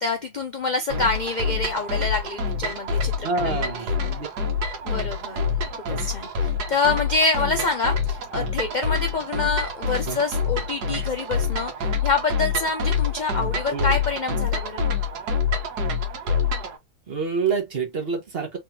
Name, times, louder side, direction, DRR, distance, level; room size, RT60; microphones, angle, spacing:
voice 1, 0.0-3.9 4.8-5.6 5.9-14.9, left 3 dB, 65° left, 0.4 m, -26 dB
sound 1, 0.9-16.8, left 4 dB, 90° right, 1.6 m, -26 dB
voice 2, 3.2-4.3 10.1-10.2 13.7-14.0 17.1-18.6, right 4 dB, 40° right, 1.2 m, -27 dB
3.6 x 3.5 x 2.7 m
omnidirectional pair, 1.7 m